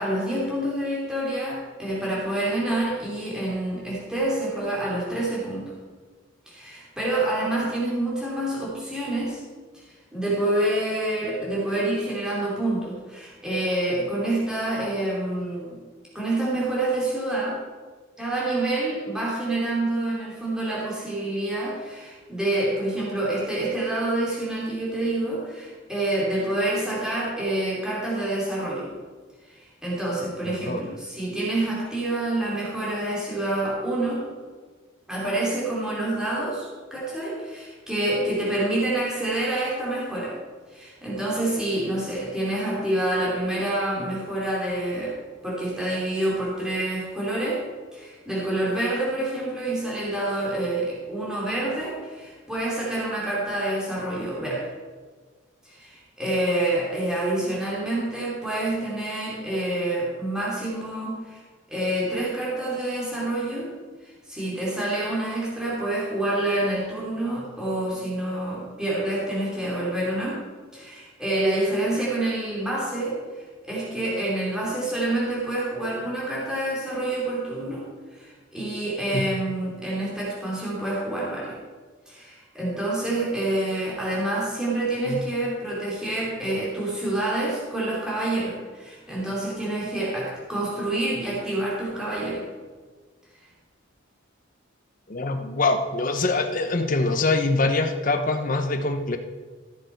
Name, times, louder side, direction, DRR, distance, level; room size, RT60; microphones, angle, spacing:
voice 1, 0.0-5.7 6.5-9.4 9.8-15.8 16.1-17.6 18.2-28.9 29.5-34.2 35.1-40.4 40.7-45.2 45.4-47.6 47.9-54.7 55.6-61.4 61.7-63.7 64.0-70.4 70.7-77.9 78.1-81.6 82.1-92.5, right 1 dB, 5° right, -7 dB, 2.7 m, -27 dB
voice 2, 30.5-30.8 79.1-79.3 85.1-85.2 95.1-99.2, left 3 dB, 40° left, 7 dB, 0.8 m, -24 dB
14.0 x 6.8 x 4.5 m, 1.4 s
head